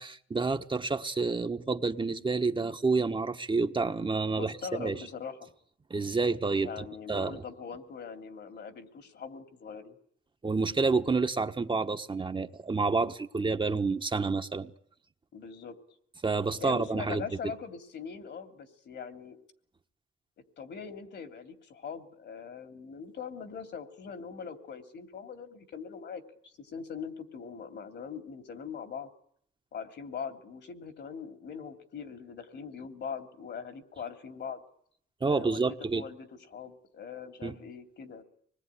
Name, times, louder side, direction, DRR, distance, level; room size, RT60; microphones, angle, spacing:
voice 1, 0.0-5.0 5.9-7.4 10.4-14.7 16.2-17.2 35.2-36.1 37.4-37.6, right 4 dB, 25° right, 1.3 m, -29 dB
voice 2, 4.3-5.5 6.6-9.9 15.3-15.8 16.6-19.4 20.6-29.1 29.7-34.6 35.2-38.2, left 6 dB, 60° left, 3.0 m, -42 dB
25.0 x 20.0 x 9.9 m
cardioid pair, 90°, 20 cm